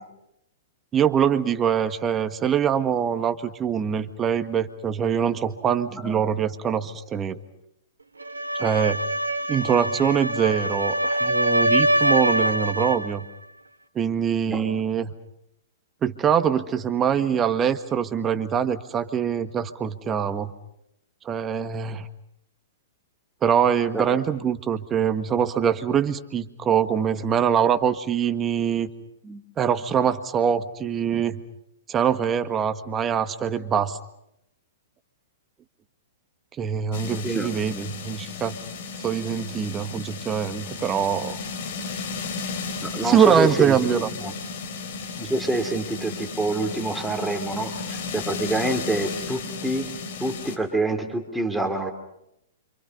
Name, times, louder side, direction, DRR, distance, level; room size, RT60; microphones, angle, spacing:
voice 1, 0.9-7.4 8.5-9.0 9.5-13.2 13.9-15.1 16.0-20.5 21.2-22.1 23.4-28.9 29.6-31.4 31.9-34.0 36.6-38.5 39.0-41.4 43.0-44.1, right 8 dB, 20° right, 10 dB, 1.6 m, -23 dB
sound 1, 8.2-13.1, right 1 dB, 90° right, 1.9 m, -24 dB
voice 2, 14.5-14.8 23.9-24.1 29.2-29.4 37.2-37.5 42.8-44.3 45.2-49.9 50.2-51.9, right 2 dB, 5° right, 4 dB, 3.2 m, -27 dB
sound 2, 36.9-50.6, left 4 dB, 55° left, 3.6 m, -34 dB
29.5 x 27.0 x 5.5 m, 0.79 s
figure-of-eight pair, 115°, 0 cm